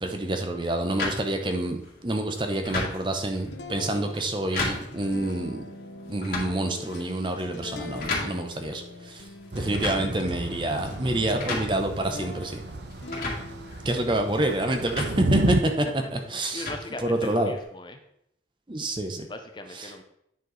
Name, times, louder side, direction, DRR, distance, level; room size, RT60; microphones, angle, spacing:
voice 1, 0.0-5.6 6.1-9.2 9.6-12.6 13.8-15.8 16.1-16.7 17.0-17.5 18.7-19.3 19.7-19.9, right 1 dB, 25° right, 5 dB, 0.7 m, -28 dB
sound 1, 1.0-17.6, left 3 dB, 50° left, 2.3 m, -37 dB
sound 2, 3.4-14.0 14.4-16.7, left 3 dB, 75° left, 0.8 m, -43 dB
Thunder / Rain, 9.5-15.6, right 2 dB, 70° right, 0.7 m, -31 dB
voice 2, 16.2-18.0 19.3-20.0, left 2 dB, 25° left, 6 dB, 0.5 m, -39 dB
9.3 x 4.6 x 3.9 m, 0.76 s
head